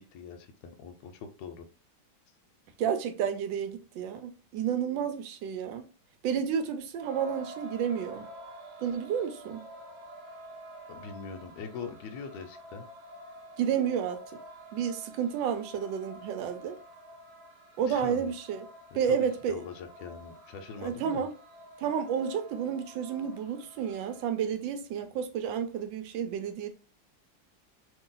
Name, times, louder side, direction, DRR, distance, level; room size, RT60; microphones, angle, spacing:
voice 1, 0.0-1.7 10.9-12.9 17.9-18.3 18.9-21.3, left 5 dB, 75° left, 1.2 m, -42 dB
voice 2, 2.8-5.9 6.2-8.3 8.8-9.6 13.6-14.2 14.7-16.8 17.8-18.6 18.9-19.6 20.8-21.3 21.8-26.7, right 8 dB, 80° right, 1.3 m, -31 dB
sound 1, 7.0-24.3, right 1 dB, 50° right, 1.0 m, -49 dB
3.1 x 2.6 x 3.8 m
omnidirectional pair, 2.1 m